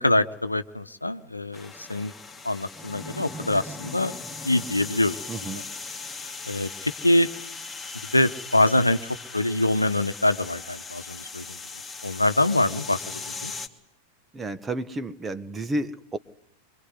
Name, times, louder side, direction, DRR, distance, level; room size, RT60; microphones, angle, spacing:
voice 1, 0.0-2.1 2.4-4.1 4.4-5.2 5.5-5.6 6.4-7.3 8.1-11.6 12.0-13.5, left 1 dB, 85° left, 11 dB, 1.1 m, -24 dB
sound 1, 1.5-13.7, left 4 dB, 10° left, 2.7 m, -38 dB
voice 2, 5.3-5.6 14.3-16.2, right 1 dB, 15° right, 13 dB, 1.4 m, -31 dB
25.0 x 23.5 x 9.7 m, 0.78 s
figure-of-eight pair, 90°, 0 cm